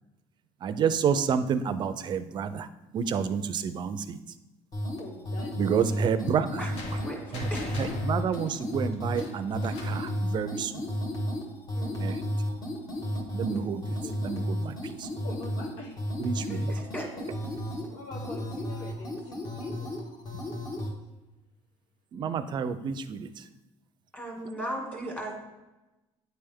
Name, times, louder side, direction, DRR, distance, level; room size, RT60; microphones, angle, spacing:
voice 1, 0.6-2.7 2.9-4.2 5.6-6.7 7.3-7.5 7.8-10.9 12.0-12.2 13.3-15.1 16.2-16.7 22.1-23.4, right 7 dB, 40° right, 12 dB, 0.4 m, -29 dB
sound 1, 4.7-20.9, equal, 35° left, 1.3 m, -33 dB
voice 2, 5.0-6.0 13.5-14.2 15.2-16.0 16.5-16.6 16.9-17.3 17.9-19.9 24.5-24.6, left 3 dB, 90° left, 0 dB, 1.1 m, -45 dB
sound 2, 6.8-10.1, left 2 dB, 65° left, 1.1 m, -42 dB
voice 3, 11.7-12.1 16.5-17.1 24.1-25.3, equal, 15° left, 0 dB, 1.9 m, -37 dB
9.1 x 3.4 x 3.5 m, 1.0 s
cardioid pair, 120°, 11 cm